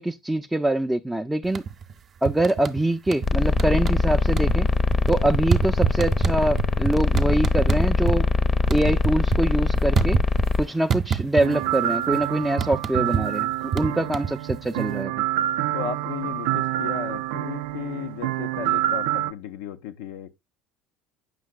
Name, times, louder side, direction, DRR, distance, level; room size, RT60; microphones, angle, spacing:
voice 1, 0.0-1.6 2.2-4.7 5.1-8.3 8.7-10.2 10.6-15.2, right 1 dB, 10° right, 0.4 m, -24 dB
sound 1, 1.4-1.9 2.3-3.3 3.6-4.1 4.3-8.2 8.5-10.6 10.9-11.8 12.0-14.9, right 7 dB, 45° right, 0.7 m, -26 dB
sound 2, 3.2-10.6, left 4 dB, 30° left, 0.7 m, -22 dB
sound 3, 11.4-19.3, right 13 dB, 75° right, 0.3 m, -27 dB
voice 2, 15.7-20.3, left 9 dB, 75° left, 0.4 m, -35 dB
7.4 x 5.7 x 2.3 m
hypercardioid pair, 75°, 0 cm